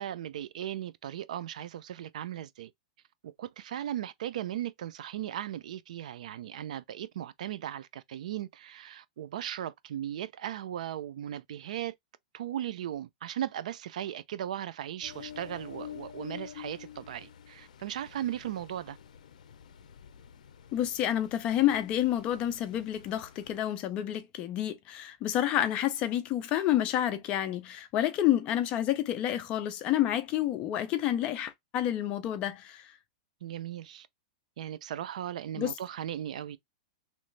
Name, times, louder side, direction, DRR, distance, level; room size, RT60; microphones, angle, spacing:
voice 1, 0.0-2.7 3.2-11.9 12.3-19.0 33.4-34.1 34.6-36.6, right 11 dB, 70° right, 0.4 m, -37 dB
Ocean, 15.0-23.6, left 9 dB, 80° left, 0.5 m, -48 dB
voice 2, 20.7-32.9 35.6-35.7, left 12 dB, 30° left, 0.5 m, -29 dB
3.1 x 2.4 x 3.1 m
supercardioid pair, 160°, 4 cm